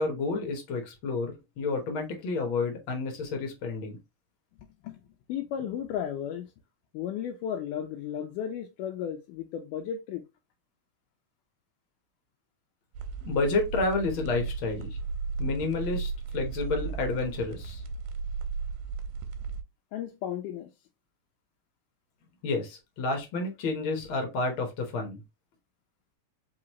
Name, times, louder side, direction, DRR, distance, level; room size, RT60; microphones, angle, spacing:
voice 1, 0.0-4.0 13.2-14.9 15.4-17.8 22.4-25.2, left 3 dB, 60° left, 1.3 m, -30 dB
voice 2, 5.3-6.5 6.9-10.2 19.9-20.7, left 9 dB, 85° left, 2.1 m, -34 dB
sound 1, 12.9-19.6, right 5 dB, 90° right, 2.2 m, -35 dB
5.0 x 3.1 x 2.9 m
omnidirectional pair, 3.6 m